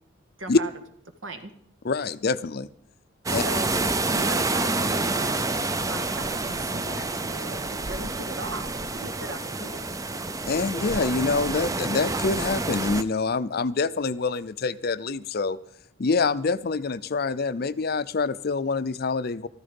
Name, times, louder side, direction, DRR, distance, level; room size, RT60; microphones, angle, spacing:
voice 1, 0.4-0.7 1.2-1.5 3.3-10.0, right 2 dB, 75° right, 8 dB, 1.5 m, -38 dB
voice 2, 1.8-2.7 3.3-3.4 10.5-15.6 16.0-19.5, left 4 dB, 50° left, 15 dB, 0.5 m, -26 dB
sound 1, 3.3-13.0, right 3 dB, 15° right, 0.5 m, -28 dB
14.0 x 13.5 x 5.3 m, 0.64 s
head